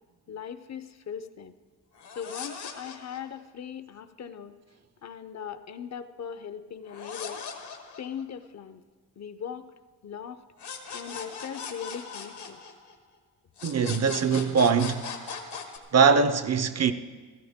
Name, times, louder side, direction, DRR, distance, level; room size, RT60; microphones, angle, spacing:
voice 1, 0.3-1.6 2.2-4.6 5.0-7.4 8.0-8.8 9.2-9.7 10.0-10.4 10.9-12.6, left 8 dB, 45° left, 0.5 m, -39 dB
sound 1, 1.9-3.4 6.9-8.5 10.6-13.2 13.6-15.8, left 6 dB, 85° left, 1.5 m, -39 dB
voice 2, 13.6-15.1 15.9-16.9, right 5 dB, 40° right, 0.5 m, -22 dB
16.0 x 14.0 x 3.5 m
wide cardioid pair, 140°, 40 cm